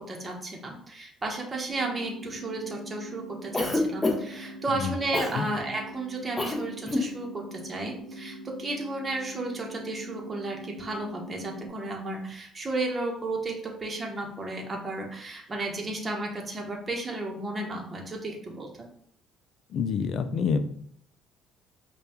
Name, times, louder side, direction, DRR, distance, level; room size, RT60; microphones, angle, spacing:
voice 1, 0.0-18.7, right 2 dB, 25° right, 0 dB, 0.9 m, -33 dB
sound 1, 1.7-11.7, right 1 dB, 60° right, 0.8 m, -43 dB
Cough, 3.5-4.4 5.1-5.4 6.4-6.6 6.8-7.1, left 2 dB, 10° left, 0.7 m, -26 dB
voice 2, 19.7-20.6, left 6 dB, 55° left, 10 dB, 0.4 m, -27 dB
5.2 x 2.3 x 2.9 m, 0.63 s
cardioid pair, 110°, 0 cm